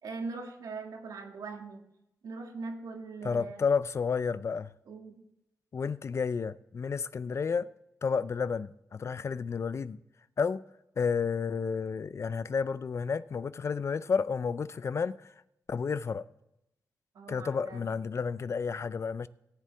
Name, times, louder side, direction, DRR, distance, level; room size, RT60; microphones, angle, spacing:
voice 1, 0.0-1.8 2.2-3.6 4.9-5.2 17.1-17.9, right 3 dB, 80° right, 1.9 m, -41 dB
voice 2, 3.2-4.7 5.7-7.7 8.0-10.0 10.4-10.6 11.0-15.3 15.7-16.2 17.3-19.3, left 5 dB, 45° left, 0.4 m, -31 dB
17.5 x 7.5 x 3.4 m
cardioid pair, 95°, 6 cm